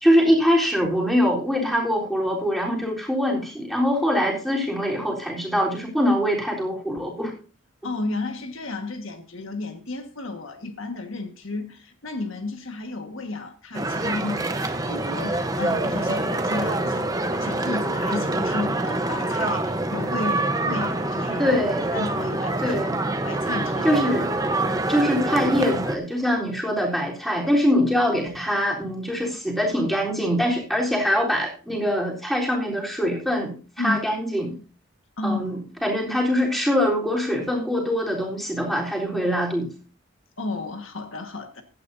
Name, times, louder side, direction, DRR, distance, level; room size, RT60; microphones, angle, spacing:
voice 1, 0.0-7.3 21.4-21.9 22.6-22.9 23.8-24.3 24.9-34.6 35.2-39.7, equal, ahead, 3.6 m, -23 dB
voice 2, 7.8-21.5 21.9-22.7 23.2-24.0 33.8-34.0 35.2-35.4 40.4-41.6, left 3 dB, 70° left, 1.6 m, -32 dB
sound 1, 13.7-26.0, right 2 dB, 15° right, 0.9 m, -26 dB
16.5 x 12.0 x 2.7 m
head